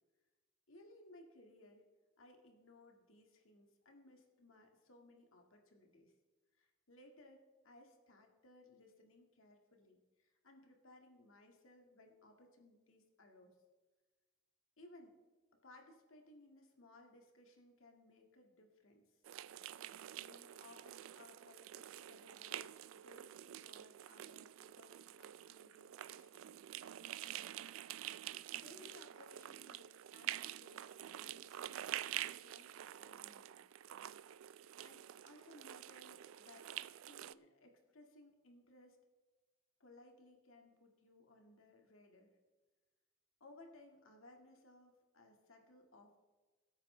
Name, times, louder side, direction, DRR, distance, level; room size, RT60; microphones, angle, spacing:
voice 1, 0.7-1.9 2.2-6.1 6.5-13.6 14.8-15.2 15.6-19.2 20.2-26.4 28.5-33.6 34.8-39.0 39.8-42.4 43.4-46.2, left 2 dB, 75° left, 2 dB, 1.9 m, -62 dB
sound 1, 19.2-37.3, right 12 dB, 75° right, 0.3 m, -48 dB
21.5 x 8.8 x 3.3 m, 1.3 s
head